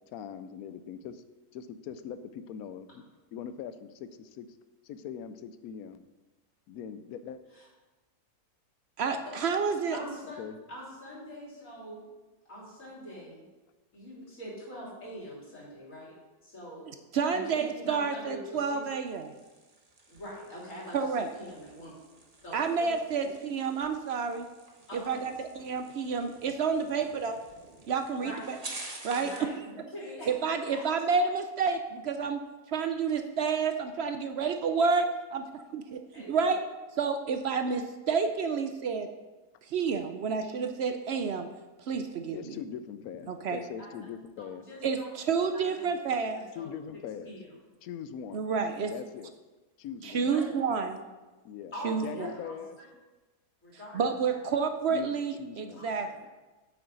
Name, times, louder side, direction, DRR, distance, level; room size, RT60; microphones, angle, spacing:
voice 1, 0.1-1.2 1.5-3.0 3.3-4.5 4.8-6.1 6.7-7.4 9.1-9.2 10.4-10.6 42.3-44.6 46.6-47.3 47.8-48.4 48.9-49.3 49.8-50.3 51.4-52.8 54.9-55.9, left 8 dB, 75° left, 12 dB, 1.0 m, -41 dB
voice 2, 9.0-10.0 17.1-19.3 20.9-21.3 22.5-24.5 24.9-27.4 27.9-28.6 29.0-29.3 30.3-32.4 32.7-36.6 37.0-39.1 39.6-41.5 41.8-42.6 43.3-43.6 44.8-46.4 48.3-48.9 50.0-51.0 51.8-52.3 53.9-56.1, right 5 dB, 65° right, 7 dB, 0.6 m, -29 dB
voice 3, 9.9-10.4 10.7-12.0 12.5-13.4 13.9-16.1 16.4-16.9 17.3-18.4 18.7-18.8 20.1-21.0 21.4-21.9 22.4-22.9 23.7-23.8 24.9-25.3 28.2-28.4 29.1-30.3 36.1-36.4 43.8-43.9 44.4-45.1 45.5-45.9 46.6-46.7 47.2-47.4 50.3-50.4 51.7-52.9 53.6-54.0 54.3-54.4 55.8-56.2, equal, 55° left, -6 dB, 3.7 m, -43 dB
sound 1, 19.0-29.6, right 2 dB, 30° right, 1.0 m, -49 dB
8.9 x 7.9 x 3.9 m, 1.2 s
omnidirectional pair, 1.7 m